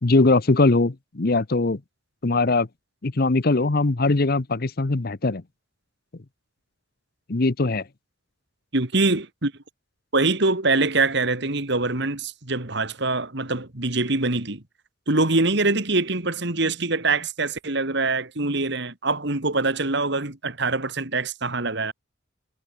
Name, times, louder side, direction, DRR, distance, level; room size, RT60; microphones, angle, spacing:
voice 1, 0.0-1.8 2.2-2.7 3.0-5.4 7.3-7.8, left 3 dB, 50° left, 0.9 m, -21 dB
voice 2, 8.7-9.5 10.1-14.6 15.1-21.9, right 3 dB, 60° right, 2.6 m, -24 dB
head